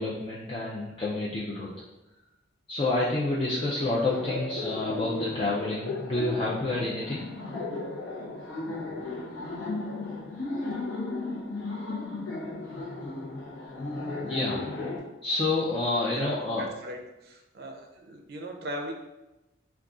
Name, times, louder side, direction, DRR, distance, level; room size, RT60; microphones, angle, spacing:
voice 1, 0.0-1.7 2.7-7.2 14.2-14.6 15.2-16.6, left 2 dB, 25° left, -7 dB, 0.3 m, -28 dB
Laughter, 4.1-15.0, left 2 dB, 75° left, 0.6 m, -35 dB
voice 2, 16.1-18.9, right 1 dB, 55° right, 2 dB, 0.4 m, -38 dB
2.4 x 2.3 x 3.6 m, 1.0 s
head